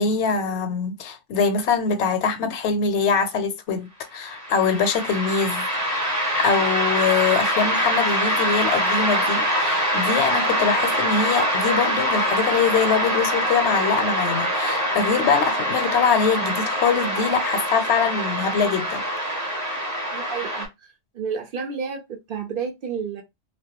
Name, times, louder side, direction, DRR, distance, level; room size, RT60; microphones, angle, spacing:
voice 1, 0.0-5.7 5.9-19.3, left 6 dB, 75° left, 0.8 m, -23 dB
sound 1, 4.2-20.7, equal, 20° right, 0.7 m, -24 dB
voice 2, 20.1-23.2, right 6 dB, 60° right, 0.6 m, -31 dB
2.2 x 2.1 x 2.7 m
omnidirectional pair, 1.2 m